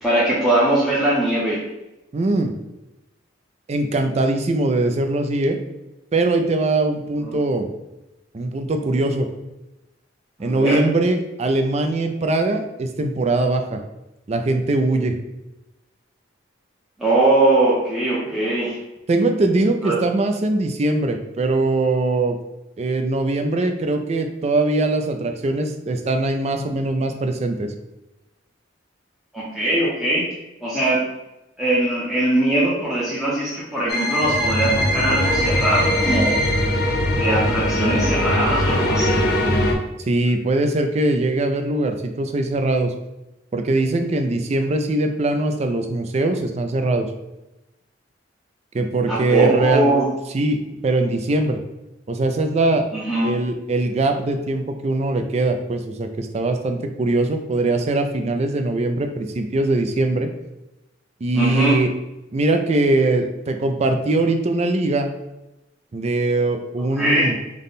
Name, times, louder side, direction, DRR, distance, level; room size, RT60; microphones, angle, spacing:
voice 1, 0.0-1.6 7.2-7.3 10.4-10.8 17.0-18.8 19.8-20.0 29.3-30.2 30.6-31.0 31.6-36.4 37.2-39.2 49.1-50.1 52.9-53.3 61.3-61.8 67.0-67.3, right 1 dB, ahead, -9 dB, 0.7 m, -21 dB
voice 2, 2.1-2.5 3.7-5.6 6.1-7.7 8.3-9.3 10.4-13.8 14.3-15.1 19.1-22.4 22.8-27.7 40.1-42.9 43.5-47.1 48.7-49.9 50.3-51.6 52.1-52.8 53.2-60.3 61.2-61.9 62.3-65.1 65.9-67.4, right 2 dB, 35° right, 6 dB, 0.3 m, -21 dB
sound 1, 33.9-39.7, left 1 dB, 55° left, 0.5 m, -20 dB
3.5 x 2.2 x 3.9 m, 0.97 s
head